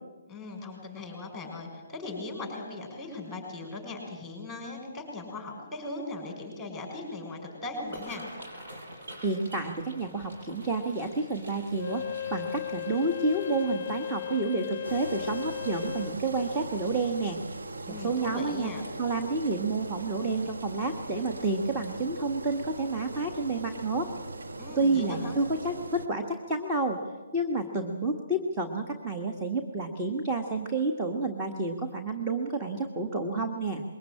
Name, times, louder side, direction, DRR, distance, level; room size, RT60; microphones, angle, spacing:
voice 1, 0.3-8.2 17.9-18.9 24.6-25.4, left 2 dB, ahead, 1 dB, 6.4 m, -39 dB
sound 1, 7.8-20.9 21.4-21.6 22.0-22.4 22.8-22.9 24.2-24.4 24.7-24.8 25.3-25.4, right 1 dB, 65° right, 7.1 m, -49 dB
voice 2, 9.2-17.4 18.0-18.7 19.0-24.1 24.7-27.0 27.3-33.8, right 2 dB, 15° right, 3 dB, 1.5 m, -30 dB
Wind instrument woodwind instrument, 11.7-16.2, left 10 dB, 45° left, 0.6 m, -36 dB
Engine, 14.8-26.1, right 2 dB, 85° right, 1.3 m, -40 dB
22.0 x 18.5 x 8.8 m, 1.3 s
hypercardioid pair, 155°, 0 cm